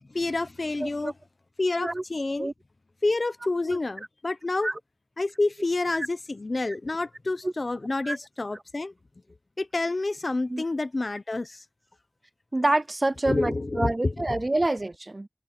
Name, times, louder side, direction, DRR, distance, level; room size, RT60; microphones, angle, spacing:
voice 1, 0.1-1.1 1.6-2.5 3.0-4.7 5.2-8.9 9.6-11.6 13.3-14.1, left 2 dB, 50° left, 1.0 m, -28 dB
voice 2, 0.8-1.1 1.8-2.0 2.4-2.5 3.7-3.8 4.6-4.8 7.4-7.5 8.0-8.2 10.5-10.6 12.5-15.3, right 2 dB, 35° right, 0.3 m, -27 dB
wide cardioid pair, 60°, 0 cm